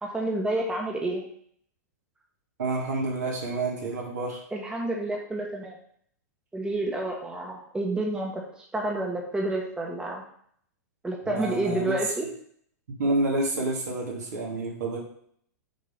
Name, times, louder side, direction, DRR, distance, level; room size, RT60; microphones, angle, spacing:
voice 1, 0.0-1.2 4.5-5.7 6.5-10.2 11.0-12.2, right 2 dB, 10° right, -1 dB, 1.4 m, -29 dB
voice 2, 2.6-4.4 11.3-12.0 12.9-15.0, right 2 dB, 75° right, -2 dB, 2.5 m, -29 dB
6.5 x 3.7 x 5.8 m, 0.63 s
hypercardioid pair, 110°, 9 cm